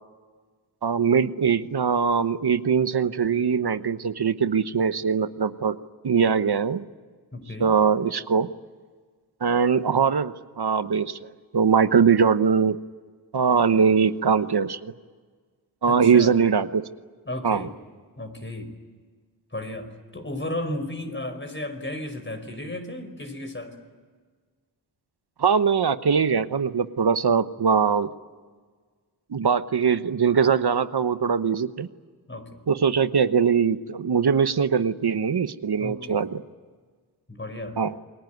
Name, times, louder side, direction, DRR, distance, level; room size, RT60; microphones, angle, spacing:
voice 1, 0.8-5.8 6.0-6.8 7.6-8.5 9.4-12.8 13.3-14.9 15.8-16.8 17.4-17.7 25.4-28.1 29.3-31.9 32.7-36.4 37.8-38.0, right 6 dB, 55° right, 12 dB, 1.1 m, -22 dB
voice 2, 7.3-7.7 15.9-16.4 17.2-17.7 18.2-18.7 19.5-23.8 32.3-32.6 35.8-36.2 37.3-37.8, left 1 dB, 25° left, 7 dB, 5.1 m, -34 dB
28.5 x 22.0 x 9.4 m, 1.5 s
cardioid pair, 55°, 45 cm